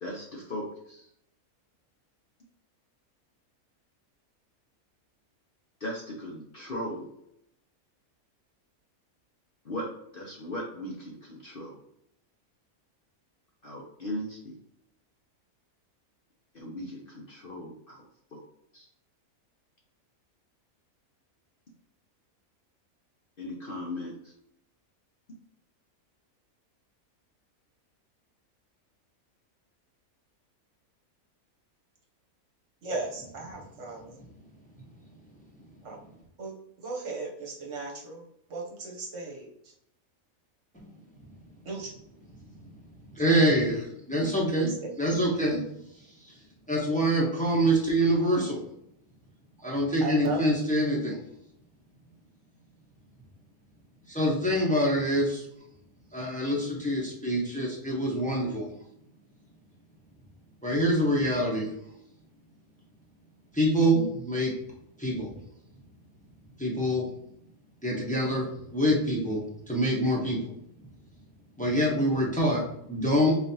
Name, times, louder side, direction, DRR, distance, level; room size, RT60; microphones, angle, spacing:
voice 1, 0.0-1.1 5.8-7.1 9.6-11.8 13.6-14.5 16.5-18.0 18.3-18.4 18.7-18.9 23.4-24.3, left 1 dB, 50° left, -2 dB, 0.7 m, -38 dB
voice 2, 32.8-34.1 35.8-36.0 36.4-36.5 36.8-38.2 38.5-39.5 41.7-41.9 44.8-44.9 50.0-50.4, right 3 dB, 60° right, -1 dB, 1.1 m, -36 dB
voice 3, 43.1-45.6 46.7-48.6 49.6-51.2 54.1-55.4 56.1-58.7 60.6-61.7 63.5-64.5 65.0-65.3 66.6-67.1 67.8-70.5 71.6-73.4, equal, 5° left, -4 dB, 0.8 m, -25 dB
4.0 x 3.3 x 2.8 m, 0.75 s
omnidirectional pair, 1.5 m